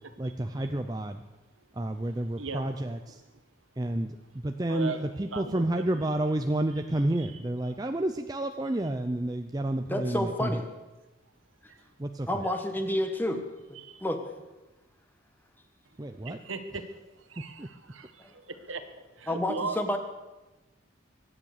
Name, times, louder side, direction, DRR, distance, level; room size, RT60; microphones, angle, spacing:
voice 1, 0.2-1.2 1.7-3.2 3.8-10.6 12.0-12.4 16.0-16.4 17.6-17.7, right 1 dB, 20° right, 6 dB, 0.5 m, -30 dB
voice 2, 2.0-2.7 4.7-5.0 5.3-5.6 7.2-7.4 11.7-11.8 12.4-12.6 13.7-14.0 16.2-16.8 17.3-18.8 19.2-19.8, right 4 dB, 80° right, 8 dB, 1.6 m, -38 dB
voice 3, 9.9-10.7 12.3-13.4 14.0-14.2 18.2-18.3 19.3-20.0, left 1 dB, 10° left, 6 dB, 1.4 m, -29 dB
23.5 x 8.9 x 6.7 m, 1.1 s
head